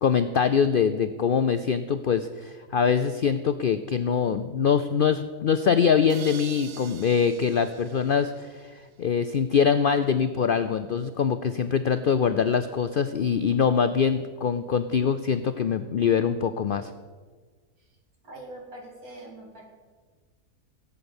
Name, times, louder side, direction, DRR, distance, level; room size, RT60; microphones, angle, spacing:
voice 1, 0.0-16.9, left 7 dB, 90° left, 11 dB, 0.4 m, -24 dB
sound 1, 6.1-8.9, right 8 dB, 85° right, 1.3 m, -45 dB
voice 2, 18.2-19.6, right 1 dB, 70° right, 0 dB, 3.1 m, -43 dB
16.5 x 8.3 x 7.1 m, 1.5 s
omnidirectional pair, 1.6 m